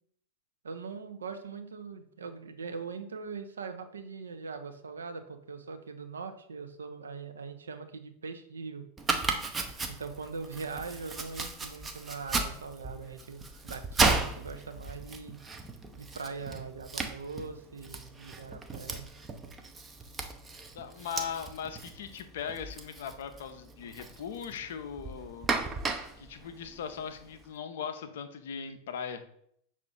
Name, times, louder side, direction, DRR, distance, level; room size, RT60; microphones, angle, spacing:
voice 1, 0.6-8.9 9.9-15.4 16.0-19.1, right 4 dB, 70° right, 7 dB, 0.4 m, -41 dB
Domestic sounds home sounds, 9.0-27.4, right 3 dB, 15° right, 0.5 m, -35 dB
voice 2, 20.7-25.5 26.2-29.2, left 7 dB, 55° left, 9 dB, 0.4 m, -39 dB
5.6 x 2.4 x 3.6 m, 0.68 s
figure-of-eight pair, 90°, 0 cm